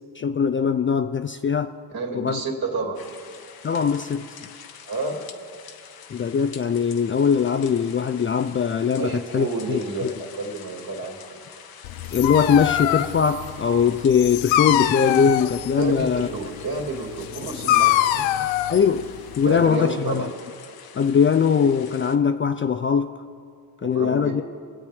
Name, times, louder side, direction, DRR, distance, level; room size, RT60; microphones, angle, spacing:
voice 1, 0.2-1.7 2.1-2.4 3.6-4.4 6.1-10.1 12.1-16.3 18.7-19.1 19.4-20.3 20.9-23.2 23.8-24.4, left 6 dB, 30° left, 9 dB, 0.4 m, -21 dB
voice 2, 1.9-3.0 4.9-5.3 9.0-11.4 15.8-18.4 19.5-20.3 23.8-24.4, right 3 dB, 55° right, -1 dB, 2.6 m, -30 dB
sound 1, 2.9-22.2, left 7 dB, 55° left, 1.0 m, -45 dB
Dog, 11.8-19.7, left 12 dB, 90° left, 0.5 m, -24 dB
22.0 x 8.0 x 3.5 m, 2.2 s
cardioid pair, 75°, 43 cm